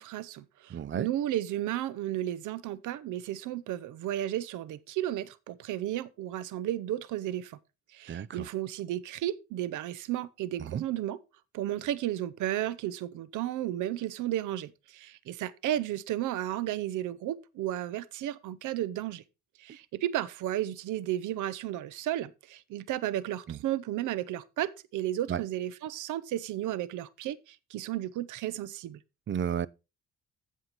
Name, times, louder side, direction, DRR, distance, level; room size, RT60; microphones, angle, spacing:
voice 1, 0.0-7.6 7.9-11.2 11.5-19.2 19.6-29.0, right 13 dB, 85° right, 0.8 m, -33 dB
voice 2, 0.7-1.1 8.1-8.5 10.6-10.8 23.5-23.6 25.3-25.4 29.3-29.7, right 8 dB, 40° right, 0.5 m, -32 dB
15.5 x 5.6 x 3.0 m
cardioid pair, 90°, 30 cm